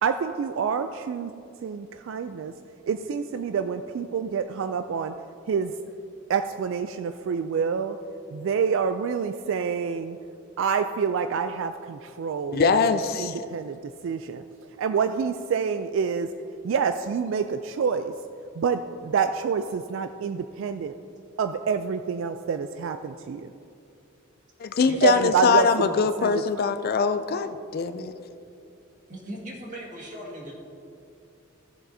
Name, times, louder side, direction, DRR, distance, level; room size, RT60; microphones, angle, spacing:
voice 1, 0.0-1.3 1.6-2.5 2.9-5.1 5.5-5.7 6.3-8.0 8.3-10.2 10.6-12.7 13.2-13.8 14.0-14.4 14.8-16.3 16.6-18.1 18.6-20.9 21.4-23.5 25.0-25.9 26.2-26.7, right 6 dB, 65° right, 9 dB, 0.3 m, -27 dB
voice 2, 12.5-13.4 24.6-28.2, left 5 dB, 45° left, 10 dB, 0.4 m, -23 dB
voice 3, 24.8-25.3 29.1-30.5, right 1 dB, 40° right, -2 dB, 1.9 m, -38 dB
15.5 x 7.3 x 2.7 m, 2.5 s
head